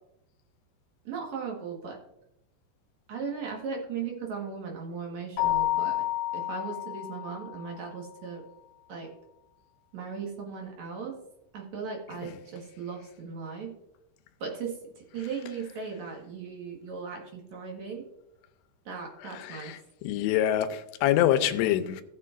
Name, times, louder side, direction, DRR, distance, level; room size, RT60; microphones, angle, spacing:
voice 1, 1.0-2.0 3.1-6.0 6.3-8.4 8.9-9.1 9.9-11.2 11.5-13.7 14.4-18.1 18.9-19.7, right 5 dB, 55° right, 2.2 m, -37 dB
Keyboard (musical), 5.4-7.8, left 14 dB, 35° left, 2.4 m, -30 dB
voice 2, 19.3-22.0, left 12 dB, 85° left, 2.7 m, -26 dB
16.5 x 7.5 x 2.5 m
omnidirectional pair, 4.9 m